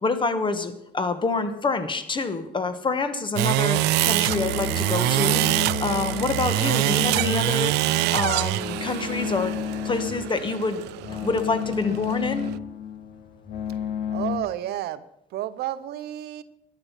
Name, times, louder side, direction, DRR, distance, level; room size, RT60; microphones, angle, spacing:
voice 1, 0.0-5.5 5.8-9.5 9.8-10.8 11.1-12.5, left 3 dB, 30° left, 10 dB, 1.6 m, -27 dB
sound 1, 3.4-12.6, right 18 dB, 90° right, 0.4 m, -25 dB
sound 2, 4.2-14.4, left 8 dB, 85° left, 1.9 m, -32 dB
voice 2, 14.1-15.0 15.3-16.4, right 13 dB, 75° right, 14 dB, 0.8 m, -31 dB
13.5 x 10.5 x 5.8 m, 0.80 s
cardioid pair, 110°, 17 cm